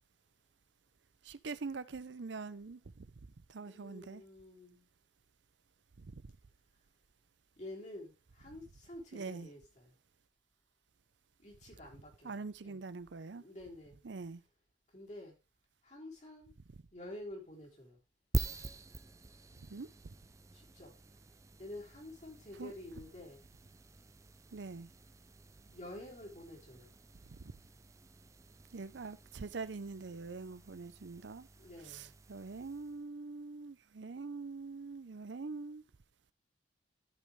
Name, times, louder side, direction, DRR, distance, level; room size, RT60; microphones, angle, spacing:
voice 1, 1.2-3.1 3.5-4.2 6.0-6.2 9.1-9.5 12.2-13.4 14.0-14.4 19.7-19.9 22.6-22.7 24.5-24.9 28.7-31.5 31.9-35.8, right 4 dB, 75° right, 0.6 m, -44 dB
voice 2, 3.7-4.9 7.6-9.9 11.4-12.8 13.4-14.0 14.9-15.3 15.8-16.5 16.9-18.0 20.5-20.9 21.6-23.4 25.7-26.9 31.6-32.2, left 1 dB, 40° left, 3.8 m, -49 dB
sound 1, 18.3-33.1, right 2 dB, 15° right, 0.4 m, -46 dB
14.5 x 5.4 x 3.2 m
head